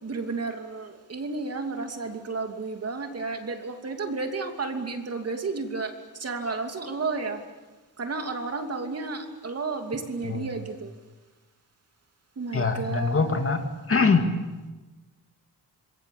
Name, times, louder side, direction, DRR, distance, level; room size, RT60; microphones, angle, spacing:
voice 1, 0.0-7.4 8.0-10.9 12.4-13.5, right 4 dB, 40° right, 5 dB, 2.8 m, -32 dB
voice 2, 12.5-14.3, left 4 dB, 35° left, 5 dB, 2.5 m, -24 dB
27.5 x 22.0 x 8.6 m, 1.2 s
wide cardioid pair, 135°, 38 cm